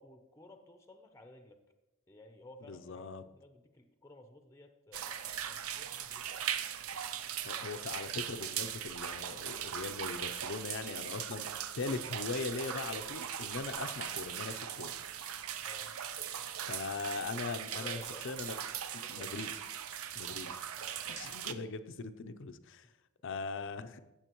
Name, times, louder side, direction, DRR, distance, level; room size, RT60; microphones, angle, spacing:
voice 1, 0.0-1.6 2.1-6.5 15.7-16.0 17.7-18.3 19.0-19.5 20.8-21.2 22.8-22.9, left 1 dB, 15° left, 6 dB, 0.6 m, -55 dB
voice 2, 2.7-3.2 7.4-11.5 11.7-14.9 16.6-18.0 18.2-18.5 18.9-19.5 20.1-20.6 21.1-22.9 23.2-24.0, left 4 dB, 55° left, 10 dB, 0.5 m, -40 dB
sound 1, 4.9-21.5, right 9 dB, 70° right, 0.6 m, -39 dB
16.0 x 7.2 x 3.0 m, 1.0 s
head